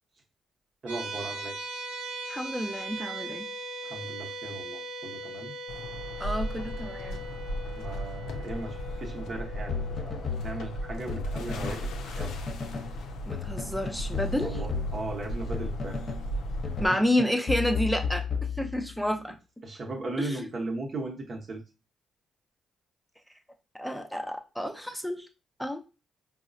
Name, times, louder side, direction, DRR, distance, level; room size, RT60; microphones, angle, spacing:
voice 1, 0.8-1.6 3.8-5.5 7.7-12.4 14.4-16.0 19.6-21.6, right 2 dB, 50° right, 1 dB, 0.9 m, -37 dB
sound 1, 0.9-12.0, right 1 dB, 85° right, 0.6 m, -40 dB
voice 2, 2.3-3.5 6.2-7.2 13.3-14.6 16.8-18.2 18.6-19.4 20.2-20.5 23.7-25.3 25.6-25.8, left 1 dB, ahead, 5 dB, 0.6 m, -30 dB
sound 2, 5.7-16.9, equal, 70° left, 0.5 m, -36 dB
sound 3, 9.7-11.8 12.2-13.0 13.3-16.3 16.6-19.1, left 6 dB, 40° left, 0.8 m, -34 dB
4.6 x 2.1 x 2.6 m, 0.30 s
hypercardioid pair, 45°, 0 cm